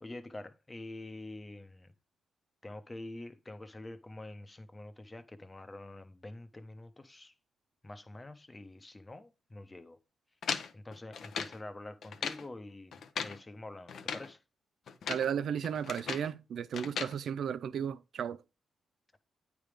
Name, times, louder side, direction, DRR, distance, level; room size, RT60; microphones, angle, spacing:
voice 1, 0.0-1.9 2.6-7.3 7.8-10.0 10.7-14.4, left 2 dB, 25° left, 0.9 m, -46 dB
sound 1, 10.4-11.6 12.0-12.5 12.9-13.4 13.9-14.3 14.9-15.3 15.6-16.3 16.7-17.2, left 6 dB, 70° left, 0.8 m, -38 dB
voice 2, 15.1-18.4, right 8 dB, 75° right, 0.4 m, -34 dB
8.8 x 3.5 x 5.0 m
cardioid pair, 65°, 0 cm